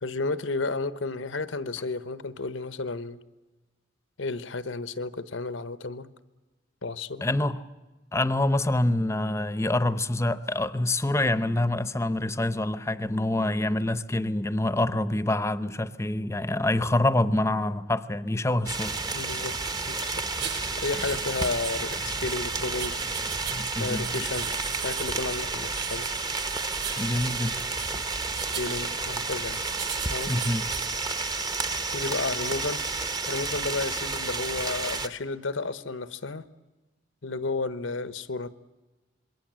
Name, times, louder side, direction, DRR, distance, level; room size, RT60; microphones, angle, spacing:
voice 1, 0.0-3.2 4.2-6.1 6.8-7.3 19.1-19.6 19.9-20.1 20.8-23.4 23.8-24.5 24.8-26.1 28.3-29.6 30.1-30.3 31.9-32.8 33.3-36.5 37.2-38.5, left 3 dB, 80° left, 14 dB, 1.0 m, -32 dB
voice 2, 7.2-7.6 8.1-18.9 23.5-24.2 27.0-27.7 30.3-30.6, left 1 dB, 15° left, 14 dB, 0.7 m, -26 dB
sound 1, 18.7-35.1, right 3 dB, 20° right, 0.9 m, -31 dB
sound 2, 20.3-30.9, right 7 dB, 60° right, 7.8 m, -39 dB
27.0 x 22.0 x 7.6 m, 1.2 s
head